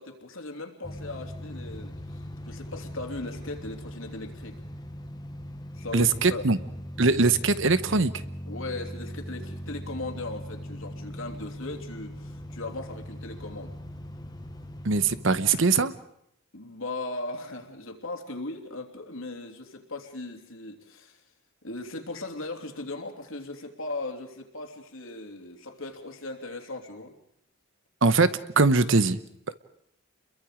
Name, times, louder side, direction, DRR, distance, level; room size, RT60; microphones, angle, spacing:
voice 1, 0.0-4.6 5.7-6.6 8.5-13.7 16.5-21.2 21.6-27.1, left 2 dB, 70° left, 4 dB, 3.0 m, -38 dB
sound 1, 0.8-15.5, equal, 20° left, 1.2 m, -40 dB
voice 2, 5.9-6.6 7.0-8.1 14.8-15.9 28.0-29.2, right 3 dB, 60° right, 13 dB, 1.0 m, -22 dB
29.5 x 22.5 x 5.1 m, 0.74 s
head